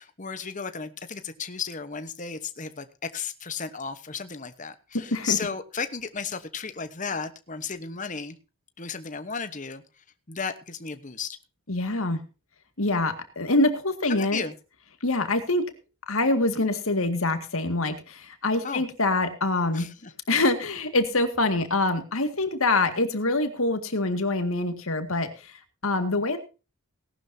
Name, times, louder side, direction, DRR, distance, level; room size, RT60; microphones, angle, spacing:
voice 1, 0.0-8.4 8.8-11.4 14.1-14.5 18.6-18.8 19.7-20.1, left 5 dB, 35° left, 10 dB, 1.1 m, -34 dB
voice 2, 4.9-5.4 11.7-12.2 12.8-14.4 15.0-15.7 16.1-19.9 20.3-26.4, left 2 dB, 70° left, 8 dB, 2.1 m, -25 dB
18.5 x 11.5 x 2.8 m, 0.32 s
head